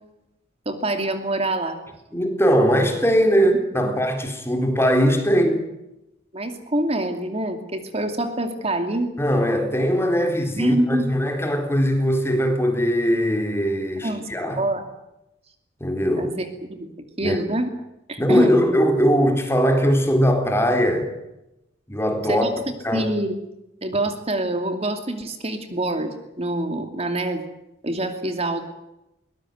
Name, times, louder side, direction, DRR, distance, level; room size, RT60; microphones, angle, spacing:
voice 1, 0.7-1.8 3.8-3.9 6.3-9.1 10.6-11.1 14.0-14.8 16.2-16.5 16.8-16.9 17.2-17.7 18.1-18.7 22.3-22.5 22.9-23.3 23.8-27.5 27.8-28.6, right 1 dB, 35° right, 2.6 m, -25 dB
voice 2, 2.1-5.7 9.2-14.6 15.8-16.3 17.2-17.4 18.2-21.1 21.9-22.5 22.8-23.1, equal, 15° left, 3.9 m, -20 dB
22.5 x 20.0 x 9.4 m
head